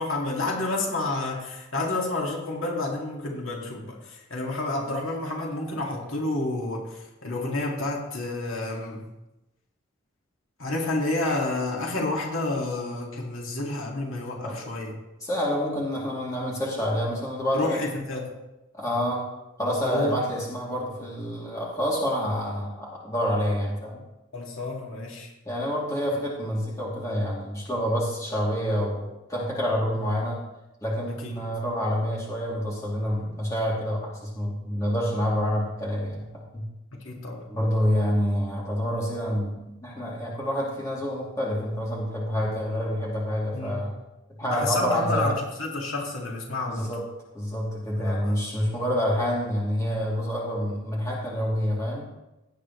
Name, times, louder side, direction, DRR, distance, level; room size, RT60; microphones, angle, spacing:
voice 1, 0.0-9.1 10.6-14.9 17.5-18.4 19.8-20.2 24.3-25.3 31.1-31.4 36.9-37.5 43.5-43.9 44.4-46.9 48.0-48.4, left 2 dB, 75° left, -1 dB, 2.2 m, -30 dB
voice 2, 15.2-17.8 18.7-19.3 19.6-24.0 25.4-30.4 30.8-36.7 37.5-43.9 44.3-45.3 46.7-47.0 47.3-52.1, equal, 15° left, -5 dB, 2.9 m, -27 dB
17.0 x 8.9 x 3.2 m, 0.98 s
head